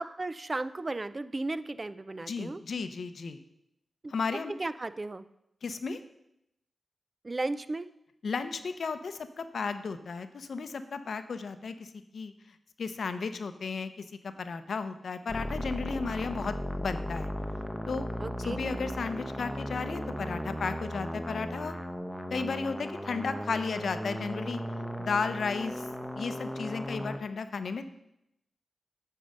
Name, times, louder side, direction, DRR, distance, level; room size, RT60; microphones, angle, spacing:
voice 1, 0.0-2.6 4.0-4.1 4.5-5.3 7.2-7.9 18.2-18.6, right 2 dB, 35° right, 14 dB, 0.4 m, -35 dB
voice 2, 2.3-3.4 4.1-4.5 5.6-6.0 8.2-12.3 12.8-13.9 14.2-17.3 17.9-18.1 18.4-21.7 22.3-24.6 25.0-25.9 26.2-27.8, left 4 dB, 70° left, 10 dB, 0.6 m, -34 dB
sound 1, 15.3-27.2, equal, ahead, 0.9 m, -36 dB
9.0 x 4.7 x 6.5 m, 0.82 s
cardioid pair, 65°, 0 cm